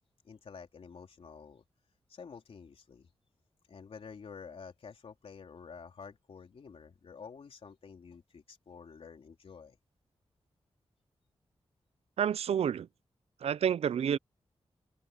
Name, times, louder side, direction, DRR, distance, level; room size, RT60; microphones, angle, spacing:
voice 1, 0.2-1.6 2.1-3.1 3.7-9.8, left 5 dB, 70° left, 3.5 m, -49 dB
voice 2, 12.2-12.9 13.4-14.2, right 8 dB, 90° right, 0.5 m, -29 dB
open air
wide cardioid pair, 90°, 10 cm